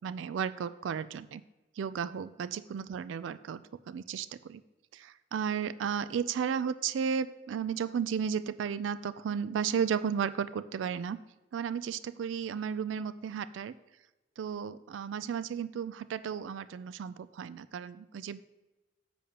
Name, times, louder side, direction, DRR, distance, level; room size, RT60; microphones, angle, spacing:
voice 1, 0.0-1.4 1.8-3.6 3.9-4.6 4.9-11.2 11.5-13.8 14.4-18.4, right 7 dB, 75° right, 14 dB, 0.3 m, -34 dB
9.9 x 6.9 x 2.9 m, 1.1 s
head